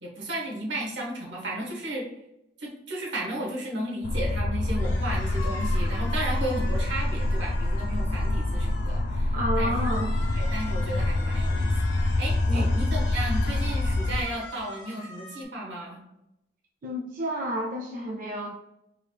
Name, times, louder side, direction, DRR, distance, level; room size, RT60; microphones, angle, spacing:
voice 1, 0.0-2.1 2.6-9.8 10.3-11.7 12.0-16.0, right 1 dB, 85° right, -1 dB, 1.4 m, -34 dB
sound 1, 4.0-14.2, left 2 dB, 50° left, 0.4 m, -26 dB
sound 2, 4.7-9.2 9.7-15.4, left 3 dB, 90° left, 1.2 m, -43 dB
voice 2, 9.3-10.1 12.5-12.7 16.8-18.5, equal, 45° right, -1 dB, 0.5 m, -30 dB
4.7 x 2.4 x 3.2 m, 0.86 s
head